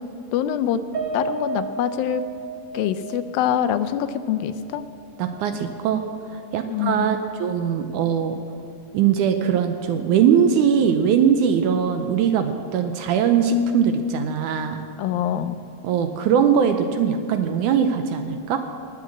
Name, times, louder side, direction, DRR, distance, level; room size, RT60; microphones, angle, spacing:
voice 1, 0.3-0.8 1.1-2.2 2.7-4.8 6.7-7.1 15.0-15.6, left 10 dB, 90° left, 11 dB, 2.5 m, -24 dB
Piano, 0.9-5.4 5.8-5.9 6.3-6.5, right 3 dB, 25° right, 1.9 m, -33 dB
voice 2, 5.2-6.0 6.3-8.4 8.9-14.8 15.8-18.6, right 7 dB, 75° right, 7 dB, 2.0 m, -21 dB
19.5 x 7.7 x 7.5 m, 2.8 s
omnidirectional pair, 4.0 m